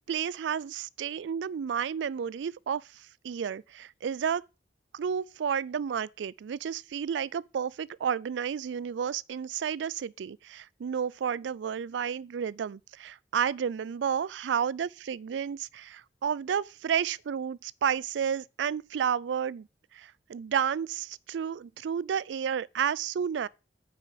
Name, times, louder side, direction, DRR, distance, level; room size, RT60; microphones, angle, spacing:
voice 1, 0.1-2.8 3.2-4.4 4.9-19.7 19.9-23.5, right 7 dB, 85° right, 0.3 m, -31 dB
8.7 x 5.5 x 5.1 m
head